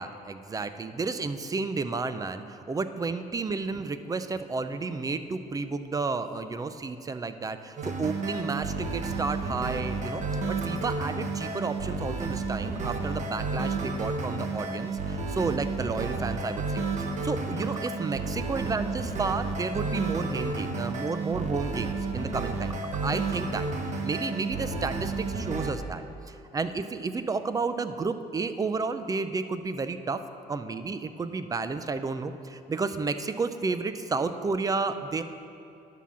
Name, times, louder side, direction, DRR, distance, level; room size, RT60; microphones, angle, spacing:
voice 1, 0.0-10.2 10.5-22.7 23.0-30.2 30.5-35.2, right 4 dB, 20° right, 11 dB, 0.5 m, -32 dB
sound 1, 7.8-25.7, right 3 dB, 45° right, 1.1 m, -31 dB
10.5 x 5.8 x 7.3 m, 2.6 s
cardioid pair, 110°, 17 cm